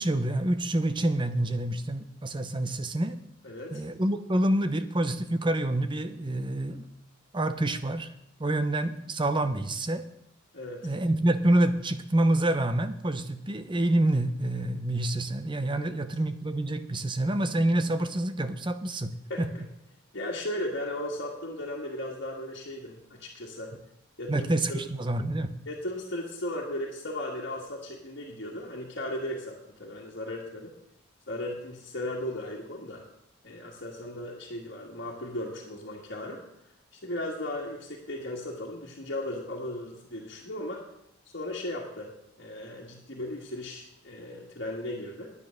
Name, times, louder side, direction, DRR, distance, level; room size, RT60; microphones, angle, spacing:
voice 1, 0.0-3.2 3.7-6.9 7.3-8.1 8.4-10.1 10.8-19.5 24.3-25.5, right 1 dB, 25° right, 10 dB, 0.8 m, -27 dB
voice 2, 3.4-3.8 10.5-10.9 15.8-16.0 19.3-19.6 20.1-23.7 24.2-24.8 25.7-30.7 31.3-33.0 33.4-36.5 37.0-40.8 41.3-42.1 42.4-45.3, left 1 dB, 60° left, -3 dB, 1.8 m, -36 dB
9.8 x 9.7 x 6.5 m, 0.78 s
head